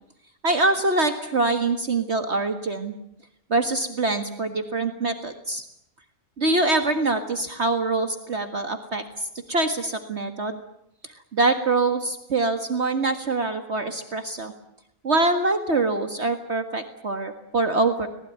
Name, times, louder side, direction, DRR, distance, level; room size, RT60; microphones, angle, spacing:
voice 1, 0.4-3.0 3.5-5.6 6.4-10.6 11.3-14.5 15.0-18.1, right 2 dB, 50° right, 6 dB, 1.9 m, -24 dB
25.5 x 19.5 x 9.4 m, 0.78 s
omnidirectional pair, 1.5 m